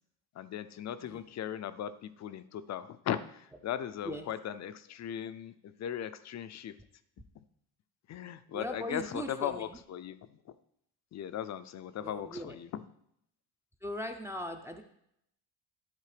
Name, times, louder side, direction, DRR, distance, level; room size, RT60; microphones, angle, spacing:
voice 1, 0.3-6.8 7.4-7.5 8.1-10.5 11.1-12.8, left 10 dB, 45° left, 13 dB, 0.5 m, -38 dB
voice 2, 8.5-9.8 12.0-12.6 13.8-14.8, equal, 5° right, 4 dB, 0.5 m, -39 dB
11.5 x 4.0 x 5.0 m, 0.75 s
cardioid pair, 140°, 41 cm